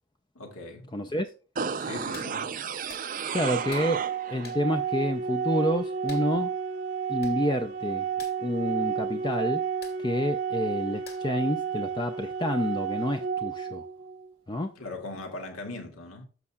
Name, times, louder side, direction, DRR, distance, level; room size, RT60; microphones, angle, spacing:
voice 1, 0.3-0.9 1.8-2.4 14.8-16.3, left 2 dB, 85° left, 2.3 m, -39 dB
voice 2, 0.9-1.3 3.3-6.5 7.1-8.1 8.4-9.7 10.0-13.9 14.5-14.7, left 1 dB, 20° left, 0.5 m, -29 dB
sound 1, 1.6-4.5 4.9-5.0, right 6 dB, 40° right, 0.5 m, -33 dB
Hands, 2.1-2.3 2.9-3.1 3.7-3.9 4.4-4.6 6.1-6.3 6.9-7.0 7.2-7.4 7.7-7.8 8.1-8.4 9.8-10.0 11.1-11.4 11.8-11.9, left 6 dB, 45° left, 2.2 m, -46 dB
Organ, 3.3-14.3, right 7 dB, 75° right, 0.9 m, -31 dB
14.0 x 5.4 x 2.3 m
head